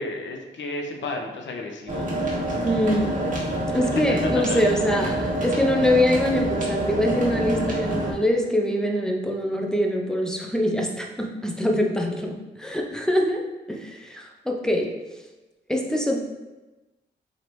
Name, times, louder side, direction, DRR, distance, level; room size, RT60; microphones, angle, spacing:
voice 1, 0.0-2.7 4.5-4.6, left 2 dB, 70° left, 3 dB, 0.6 m, -33 dB
sound 1, 1.9-8.1, right 1 dB, 40° right, 1.4 m, -26 dB
voice 2, 2.6-3.2 3.7-13.4 13.7-14.9 15.7-16.2, left 1 dB, 5° left, 1 dB, 0.6 m, -24 dB
3.9 x 3.3 x 3.0 m, 1.1 s
cardioid pair, 75°, 20 cm